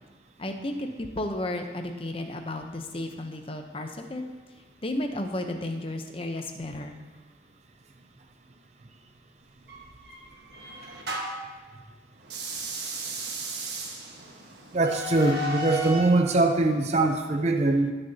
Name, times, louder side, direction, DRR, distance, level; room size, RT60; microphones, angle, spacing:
voice 1, 0.4-4.3 4.8-7.0, left 1 dB, 30° left, 5 dB, 0.7 m, -33 dB
sound 1, 9.7-11.5 12.2-16.2, right 1 dB, 60° right, 1.4 m, -35 dB
voice 2, 14.7-17.9, right 2 dB, 35° right, 4 dB, 0.5 m, -22 dB
17.5 x 6.6 x 2.8 m, 1.3 s
head